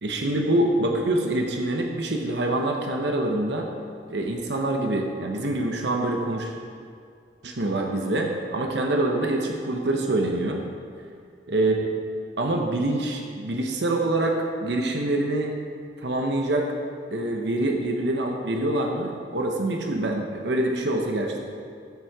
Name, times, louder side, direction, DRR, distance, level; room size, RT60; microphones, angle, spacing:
voice 1, 0.0-3.7 4.1-6.5 7.4-10.6 11.5-12.0 12.4-15.5 16.0-16.7 17.1-21.4, right 1 dB, 85° right, 2 dB, 1.0 m, -25 dB
13.5 x 6.4 x 4.7 m, 2.2 s
head